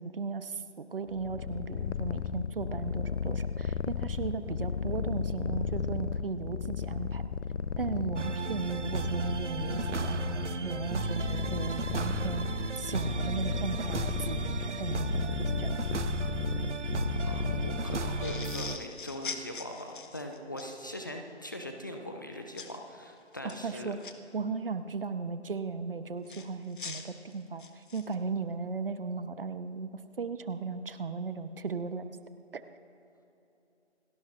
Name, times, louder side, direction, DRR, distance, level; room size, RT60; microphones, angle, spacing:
voice 1, 0.0-7.2 7.8-12.5 12.8-15.8 23.4-24.0 24.3-29.9 30.2-32.1 32.5-32.6, right 4 dB, 50° right, 11 dB, 0.9 m, -36 dB
Purr, 1.1-18.8, left 6 dB, 90° left, 0.6 m, -34 dB
sound 1, 8.2-18.8, right 4 dB, 80° right, 0.8 m, -35 dB
voice 2, 17.2-24.0, left 1 dB, 15° left, 3 dB, 0.6 m, -41 dB
sound 2, 18.2-20.7 22.6-22.8 23.3-24.1 26.3-28.1, left 5 dB, 45° left, 1.3 m, -42 dB
28.5 x 18.0 x 2.5 m, 2.9 s
figure-of-eight pair, 145°, 35 cm